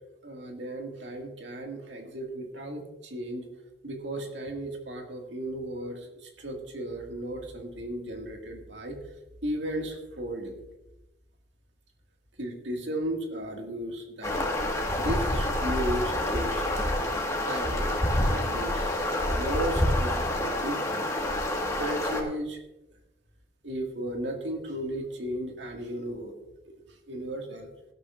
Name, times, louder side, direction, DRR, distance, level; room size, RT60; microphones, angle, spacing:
voice 1, 0.2-3.5 3.8-9.0 9.4-10.5 12.4-14.5 15.0-16.6 17.5-17.8 18.2-21.1 21.8-22.6 23.6-26.3 26.6-26.8 27.1-27.7, right 1 dB, 90° right, 2 dB, 2.1 m, -35 dB
sound 1, 14.2-22.2, left 1 dB, 20° left, 1.7 m, -27 dB
17.0 x 12.0 x 2.5 m, 0.96 s
head